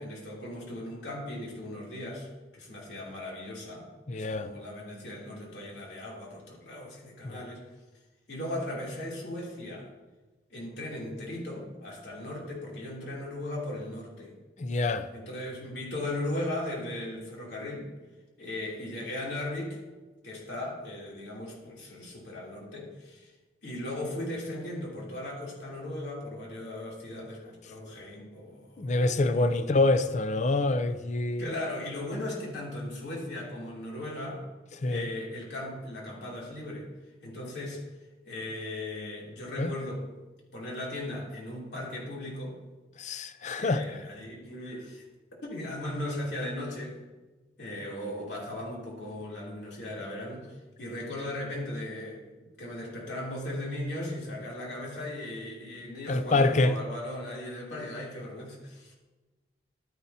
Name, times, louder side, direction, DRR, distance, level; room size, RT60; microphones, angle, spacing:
voice 1, 0.0-2.3 2.5-7.7 8.3-9.9 10.5-14.3 15.1-18.0 18.4-19.8 20.2-23.3 23.6-29.8 31.4-34.4 34.9-36.9 37.2-37.8 38.2-40.1 40.5-42.6 43.6-45.0 45.4-47.0 47.6-52.2 52.6-58.9, left 1 dB, 75° left, 3.0 m, -37 dB
voice 2, 4.1-4.5 7.2-7.4 14.6-15.1 28.8-31.5 34.8-35.1 39.6-39.7 43.0-44.0 56.1-56.8, left 2 dB, 40° left, 0.5 m, -26 dB
12.0 x 9.9 x 2.8 m
head